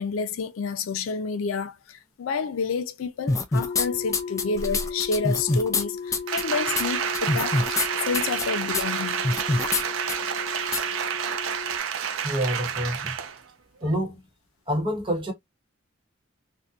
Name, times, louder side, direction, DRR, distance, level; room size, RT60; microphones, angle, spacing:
voice 1, 0.0-9.2, left 5 dB, 90° left, 0.4 m, -29 dB
sound 1, 3.3-3.9 4.1-5.8 6.1-6.4 6.8-6.9 7.1-7.9 8.1-8.4 8.7-8.8 9.2-9.8 10.1-10.2 10.7-10.8, left 3 dB, 15° left, 0.3 m, -24 dB
sound 2, 3.5-11.8, left 5 dB, 65° left, 1.0 m, -36 dB
Applause, 6.3-13.4 13.8-13.9, right 8 dB, 75° right, 0.4 m, -29 dB
voice 2, 12.2-13.1 13.8-14.2 14.7-15.3, equal, 25° right, 1.0 m, -27 dB
2.6 x 2.2 x 2.3 m
head